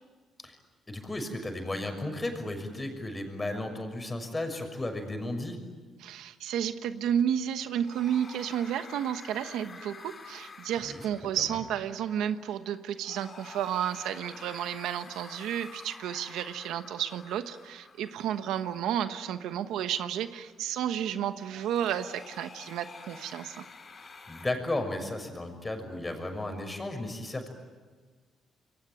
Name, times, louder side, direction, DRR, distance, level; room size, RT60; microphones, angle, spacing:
voice 1, 0.9-5.6 10.8-11.0 24.3-27.5, left 2 dB, 20° left, 5 dB, 6.3 m, -34 dB
voice 2, 6.0-23.6, right 9 dB, 85° right, 10 dB, 1.2 m, -32 dB
sound 1, 7.7-24.5, left 4 dB, 40° left, 3.0 m, -50 dB
28.0 x 23.0 x 9.3 m, 1.4 s
cardioid pair, 90°, 0 cm